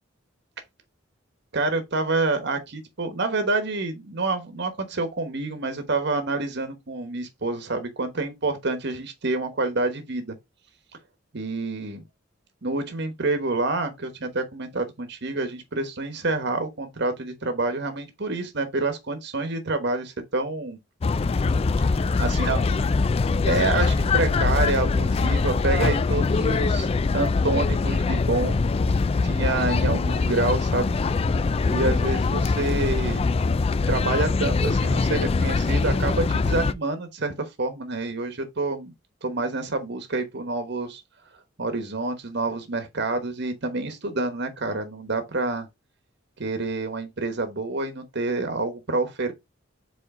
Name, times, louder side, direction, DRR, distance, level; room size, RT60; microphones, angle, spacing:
voice 1, 1.5-10.4 11.3-12.0 12.6-20.8 21.9-22.6 23.5-26.9 27.1-28.6 29.2-30.9 31.7-33.2 33.9-38.9 39.2-41.0 41.6-45.7 46.4-49.3, right 3 dB, 60° right, 1.2 m, -27 dB
sound 1, 21.0-36.7, left 4 dB, 30° left, 0.3 m, -23 dB
4.9 x 4.2 x 4.8 m
head